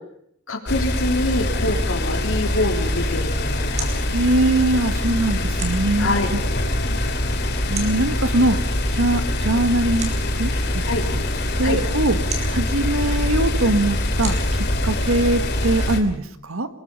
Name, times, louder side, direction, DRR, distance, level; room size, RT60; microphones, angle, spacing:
voice 1, 0.5-3.9 6.0-6.3 10.9-11.0 11.6-11.8, left 2 dB, 70° left, 3 dB, 3.4 m, -25 dB
sound 1, 0.7-16.0, left 1 dB, 50° left, 2.7 m, -23 dB
sound 2, 3.1-15.9, right 4 dB, 35° right, 4.4 m, -41 dB
voice 2, 4.1-6.4 7.7-8.6 8.9-10.1 10.4-10.8 11.6-12.2 12.5-14.4 14.8-16.7, right 2 dB, 80° right, 10 dB, 1.7 m, -21 dB
26.5 x 21.0 x 5.6 m, 0.68 s
head